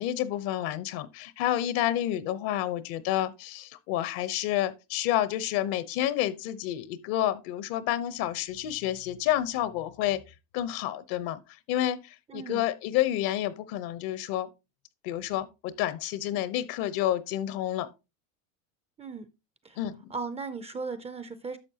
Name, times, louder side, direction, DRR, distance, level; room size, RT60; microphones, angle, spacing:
voice 1, 0.0-10.2 10.5-11.4 11.7-14.5 15.0-17.9 19.8-20.0, left 12 dB, 55° left, 0.9 m, -29 dB
voice 2, 12.3-12.7 19.0-19.3 19.6-19.8 20.1-21.6, right 4 dB, 15° right, 0.5 m, -37 dB
10.5 x 6.7 x 2.8 m
supercardioid pair, 120°, 43 cm